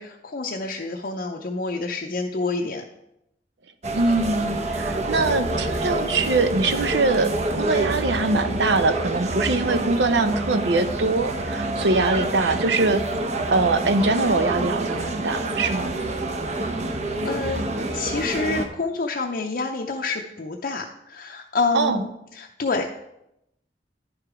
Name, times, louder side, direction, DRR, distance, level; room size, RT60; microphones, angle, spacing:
voice 1, 0.0-2.8 17.1-17.7 17.9-22.9, left 3 dB, 55° left, 0 dB, 0.6 m, -28 dB
sound 1, 3.8-18.7, right 2 dB, 40° right, 0.7 m, -27 dB
voice 2, 3.9-7.3 7.6-13.0 13.5-15.9 21.7-22.0, right 3 dB, 80° right, 10 dB, 0.7 m, -22 dB
10.5 x 4.8 x 4.9 m, 0.83 s
head